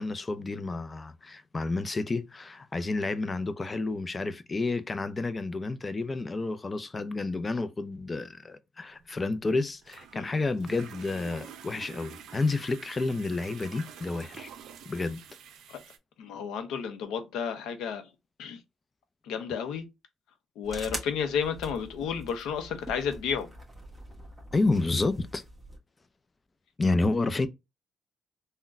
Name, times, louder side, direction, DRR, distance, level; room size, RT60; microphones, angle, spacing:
voice 1, 0.0-14.5 14.9-15.2 24.5-25.4 26.8-27.5, left 3 dB, 30° left, 0.5 m, -30 dB
sound 1, 9.0-16.0, right 8 dB, 80° right, 0.5 m, -48 dB
voice 2, 16.2-18.1 18.4-18.6 19.2-19.9 20.6-23.5, left 7 dB, 90° left, 0.6 m, -32 dB
sound 2, 20.6-25.8, right 1 dB, 5° right, 1.2 m, -43 dB
3.7 x 2.2 x 2.4 m
cardioid pair, 90°, 0 cm